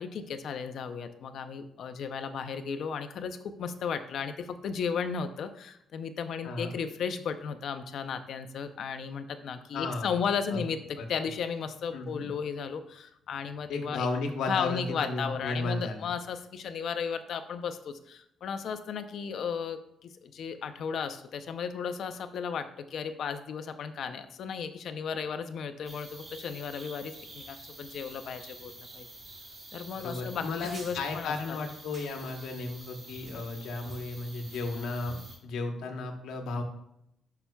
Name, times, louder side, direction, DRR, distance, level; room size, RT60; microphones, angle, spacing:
voice 1, 0.0-14.1 14.5-29.1 29.7-31.6, left 6 dB, 55° left, 9 dB, 0.5 m, -35 dB
voice 2, 9.7-10.1 10.5-10.6 11.0-11.1 11.9-12.3 13.7-16.0 29.9-36.6, left 3 dB, 80° left, 4 dB, 1.1 m, -34 dB
sound 1, 25.8-35.4, right 2 dB, 25° right, 1.8 m, -47 dB
11.0 x 5.8 x 2.3 m, 0.77 s
cardioid pair, 175°, 0 cm